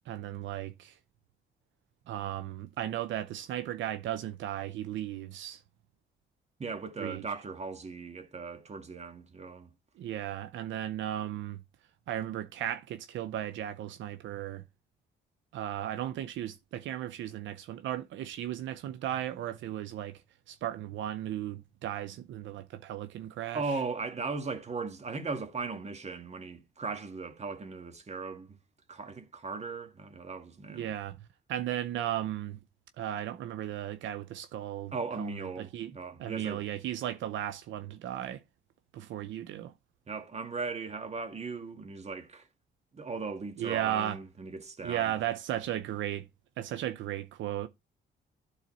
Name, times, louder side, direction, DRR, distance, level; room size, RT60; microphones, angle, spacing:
voice 1, 0.1-1.0 2.1-5.6 7.0-7.2 10.0-11.6 12.1-14.6 15.5-23.8 30.7-31.2 31.5-32.6 33.0-35.9 36.2-38.4 38.9-39.7 43.6-44.2 44.8-46.3 46.6-47.7, right 12 dB, 80° right, 0.6 m, -35 dB
voice 2, 6.6-9.7 23.5-28.6 28.9-30.9 34.9-36.6 40.1-42.5 42.9-45.1, right 4 dB, 35° right, 1.7 m, -38 dB
12.0 x 4.1 x 4.2 m
cardioid pair, 90°, 19 cm